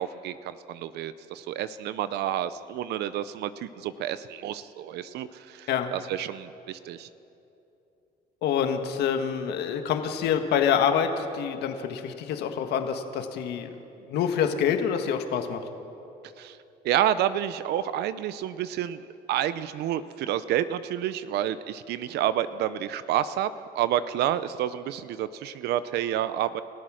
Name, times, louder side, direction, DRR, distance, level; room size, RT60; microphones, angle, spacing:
voice 1, 0.0-7.1 16.4-16.6 16.8-19.0 19.3-26.6, right 11 dB, 75° right, 14 dB, 0.7 m, -29 dB
voice 2, 8.4-13.7 14.1-15.6, left 8 dB, 80° left, 6 dB, 1.7 m, -26 dB
29.5 x 14.5 x 6.4 m, 2.8 s
cardioid pair, 110°, 17 cm